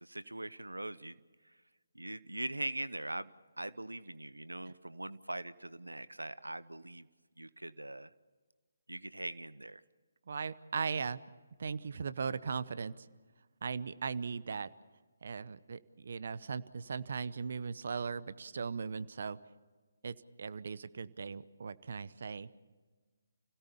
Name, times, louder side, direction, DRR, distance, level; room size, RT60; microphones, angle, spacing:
voice 1, 0.0-1.2 1.9-3.3 3.6-7.1 7.4-8.1 8.9-9.8, right 1 dB, 90° right, 16 dB, 0.8 m, -41 dB
voice 2, 10.3-11.2 11.6-13.1 13.6-14.7 15.2-19.4 20.0-22.5, right 5 dB, 55° right, 16 dB, 0.9 m, -38 dB
30.0 x 17.0 x 7.0 m, 1.4 s
figure-of-eight pair, 145°, 0 cm